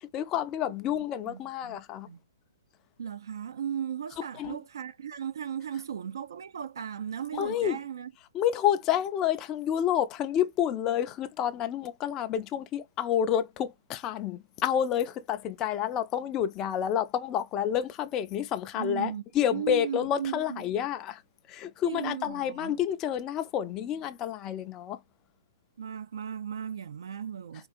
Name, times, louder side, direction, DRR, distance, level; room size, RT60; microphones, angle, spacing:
voice 1, 0.1-2.1 4.4-4.6 7.3-7.8 8.3-21.2 21.5-25.0, left 10 dB, 20° left, 0.4 m, -29 dB
voice 2, 1.3-1.8 2.1-2.2 3.0-8.1 18.7-19.2 19.5-20.6 21.8-22.8 25.8-27.7, right 8 dB, 75° right, 0.5 m, -36 dB
3.8 x 2.3 x 2.5 m
hypercardioid pair, 150°, 2 cm